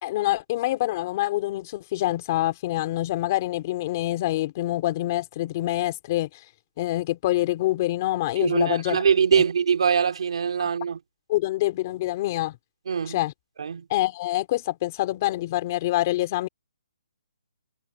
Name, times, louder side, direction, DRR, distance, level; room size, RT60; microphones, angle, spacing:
voice 1, 0.0-6.3 6.8-9.0 9.4-9.5 11.3-12.6 13.0-13.3 13.9-16.5, left 16 dB, 25° left, 2.5 m, -26 dB
voice 2, 8.4-11.0 12.9-13.2 13.6-13.8, right 7 dB, 60° right, 2.7 m, -23 dB
hypercardioid pair, 170°, 3 cm